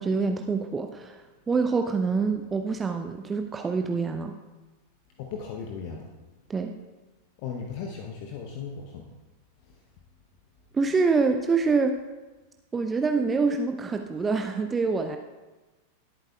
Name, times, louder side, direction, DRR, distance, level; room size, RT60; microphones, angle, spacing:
voice 1, 0.0-4.3 6.5-6.7 10.7-12.0 12.7-15.2, right 4 dB, 15° right, 6 dB, 0.5 m, -26 dB
voice 2, 5.2-6.1 7.4-9.1 9.7-9.8, left 6 dB, 45° left, 2 dB, 0.9 m, -37 dB
17.5 x 8.7 x 2.4 m, 1.2 s
figure-of-eight pair, 90°, 0 cm